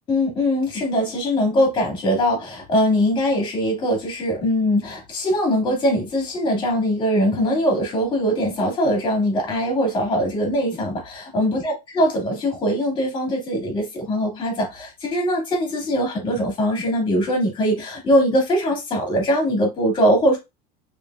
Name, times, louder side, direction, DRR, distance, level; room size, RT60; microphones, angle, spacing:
voice 1, 0.1-20.4, equal, 25° left, 1 dB, 2.0 m, -21 dB
4.9 x 3.3 x 2.3 m, 0.22 s
supercardioid pair, 160°, 20 cm